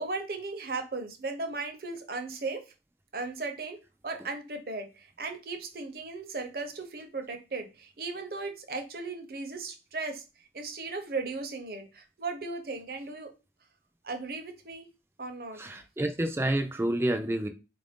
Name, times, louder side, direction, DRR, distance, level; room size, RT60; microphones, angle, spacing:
voice 1, 0.0-2.6 3.1-3.8 4.0-10.2 10.5-13.3 14.0-14.9 15.2-15.8, right 3 dB, 55° right, 0.7 m, -36 dB
voice 2, 15.6-17.5, right 1 dB, 15° right, 0.4 m, -29 dB
4.2 x 2.6 x 3.5 m
head